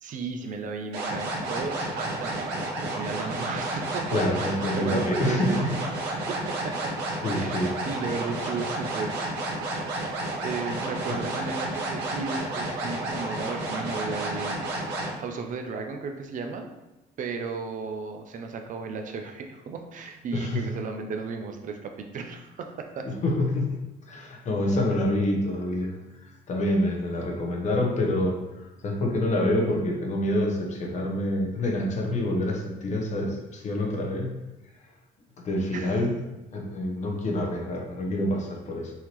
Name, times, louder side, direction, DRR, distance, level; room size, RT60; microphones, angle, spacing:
voice 1, 0.0-5.6 6.3-6.9 7.3-9.1 10.4-14.9 15.2-16.7 17.2-23.1 35.7-36.0, right 4 dB, 50° right, 5 dB, 0.6 m, -35 dB
sound 1, 0.9-15.1, right 2 dB, 85° right, 1.1 m, -31 dB
voice 2, 4.1-5.7 7.2-7.7 11.1-11.2 20.3-20.6 23.0-23.8 24.1-34.4 35.4-36.1 36.5-38.9, left 1 dB, 45° left, 1 dB, 1.0 m, -27 dB
5.6 x 2.8 x 3.1 m, 1.0 s
cardioid pair, 110°, 17 cm